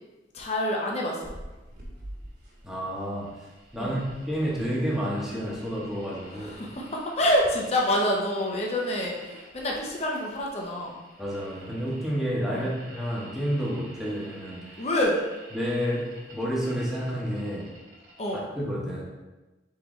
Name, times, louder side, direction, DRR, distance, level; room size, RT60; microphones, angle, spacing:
voice 1, 0.3-1.3 3.8-4.0 6.3-10.9 12.5-12.7 14.8-15.2 18.2-18.5, left 1 dB, 35° left, -1 dB, 0.7 m, -27 dB
sound 1, 1.2-18.3, right 1 dB, 55° right, 1.3 m, -49 dB
voice 2, 2.6-3.4 3.7-6.5 11.2-14.6 15.5-17.7 18.5-19.0, equal, ahead, -5 dB, 0.9 m, -30 dB
4.6 x 3.8 x 3.0 m, 1.1 s
head